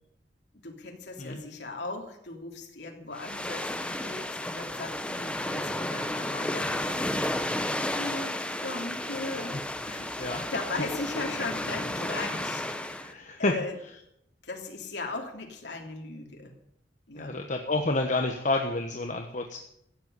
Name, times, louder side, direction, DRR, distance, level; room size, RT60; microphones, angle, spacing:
voice 1, 0.6-7.6 8.0-9.6 9.9-12.7 13.4-13.7 14.4-16.5 17.1-17.4, left 3 dB, 75° left, 1 dB, 3.1 m, -38 dB
sound 1, 3.1-13.1, left 1 dB, 5° left, 1.0 m, -32 dB
voice 2, 13.0-13.5 17.1-19.6, left 2 dB, 45° left, 3 dB, 1.3 m, -29 dB
15.5 x 7.9 x 9.5 m, 0.74 s
head